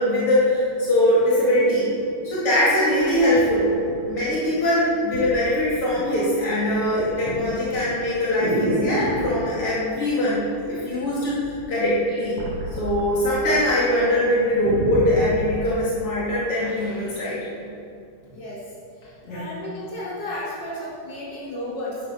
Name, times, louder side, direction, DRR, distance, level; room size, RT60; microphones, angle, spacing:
voice 1, 0.0-1.9 2.2-3.7 4.1-12.4 12.8-17.4 19.2-19.4, left 1 dB, 80° left, -8 dB, 3.7 m, -22 dB
sound 1, 2.4-2.5 3.0-4.5 5.1-5.3 5.7-6.2 6.5-9.3 10.5-11.0 11.3-13.6 13.9-14.0 14.3-15.4 16.1-16.2, right 1 dB, 80° right, 2.7 m, -30 dB
voice 2, 19.0-22.0, left 1 dB, 50° left, -8 dB, 4.5 m, -33 dB
11.5 x 11.0 x 6.0 m, 2.5 s
omnidirectional pair, 2.4 m